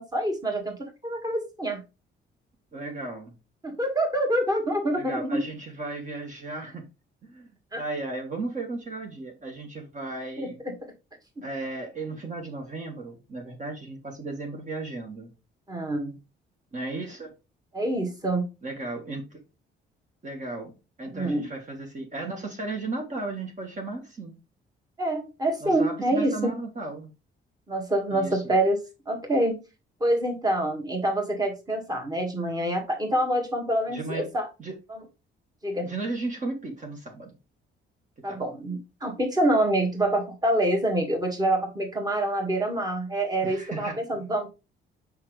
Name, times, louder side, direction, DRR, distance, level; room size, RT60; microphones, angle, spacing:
voice 1, 0.0-1.8 3.6-5.4 7.7-7.8 10.4-10.7 15.7-16.1 17.7-18.4 21.1-21.5 25.0-26.6 27.7-29.6 30.0-34.5 34.9-35.0 35.6-35.9 38.2-44.5, right 1 dB, 20° right, 1.9 m, -26 dB
voice 2, 2.7-3.3 4.9-6.8 7.2-10.6 11.4-15.3 16.7-17.3 18.6-19.4 20.2-24.3 25.6-27.1 28.1-28.4 33.9-34.3 34.6-34.7 35.8-37.3 38.3-38.4 43.4-44.0, right 2 dB, 40° right, 1.6 m, -35 dB
5.6 x 5.2 x 3.3 m
cardioid pair, 90°, 20 cm